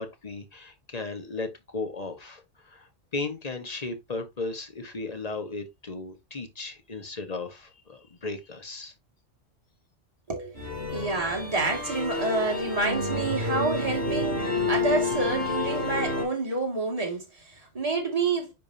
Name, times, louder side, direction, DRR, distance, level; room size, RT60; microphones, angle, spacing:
voice 1, 0.0-8.9, left 3 dB, 35° left, 1.2 m, -36 dB
voice 2, 10.3-18.5, right 3 dB, 30° right, 2.2 m, -29 dB
sound 1, 10.5-16.2, left 3 dB, 55° right, 3.9 m, -29 dB
10.0 x 3.7 x 2.7 m
omnidirectional pair, 1.2 m